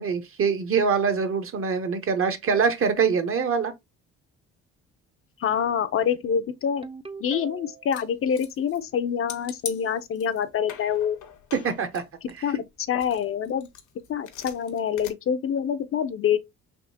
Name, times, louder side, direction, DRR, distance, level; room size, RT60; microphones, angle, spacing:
voice 1, 0.0-3.7 11.6-12.0 12.4-12.5, right 6 dB, 45° right, 0.7 m, -24 dB
voice 2, 5.4-6.9 7.2-11.2 12.4-13.7 14.1-16.4, left 8 dB, 50° left, 0.4 m, -26 dB
Ringtone, 6.8-8.0, right 5 dB, 20° right, 0.4 m, -40 dB
sound 1, 7.9-8.9 9.3-10.4 10.7-12.7 13.0-15.1, left 9 dB, 75° left, 0.8 m, -41 dB
3.5 x 2.7 x 2.7 m
cardioid pair, 90°, 30 cm